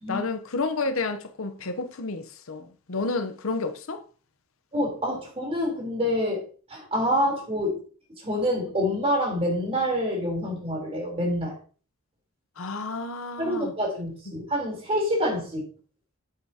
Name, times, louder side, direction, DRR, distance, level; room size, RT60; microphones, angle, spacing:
voice 1, 0.1-4.0 12.6-13.7, left 3 dB, 65° left, 0.8 m, -30 dB
voice 2, 4.7-6.4 6.7-7.8 8.2-11.6 13.4-15.6, equal, 25° right, 3.6 m, -27 dB
8.0 x 7.8 x 2.8 m
head